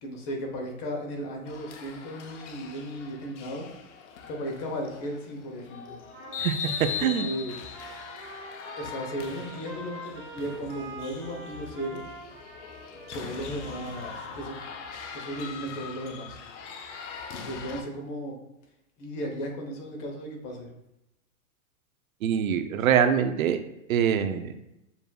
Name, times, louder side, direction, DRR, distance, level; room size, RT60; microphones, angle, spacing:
voice 1, 0.0-3.7 4.3-6.0 7.0-7.6 8.8-12.0 13.1-14.6 15.1-16.4 17.3-18.3 19.0-20.7, equal, 35° left, 1 dB, 1.0 m, -35 dB
sound 1, 1.5-17.8, left 6 dB, 55° left, 0.6 m, -41 dB
Trumpet, 6.1-14.6, right 2 dB, 10° right, 0.4 m, -45 dB
voice 2, 22.2-23.6 23.9-24.5, right 8 dB, 75° right, 9 dB, 0.6 m, -24 dB
6.9 x 2.6 x 2.3 m, 0.88 s
hypercardioid pair, 140°, 42 cm